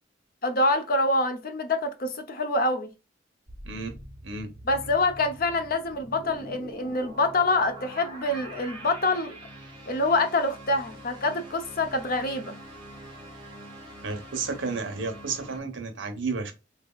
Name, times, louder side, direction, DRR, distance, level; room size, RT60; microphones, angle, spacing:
voice 1, 0.4-2.9 4.7-9.4 9.9-12.6, left 2 dB, 50° left, 0.7 m, -26 dB
sound 1, 3.5-15.6, right 1 dB, 25° right, 1.3 m, -44 dB
voice 2, 14.0-16.5, right 4 dB, 80° right, 1.0 m, -32 dB
3.6 x 3.3 x 2.3 m
head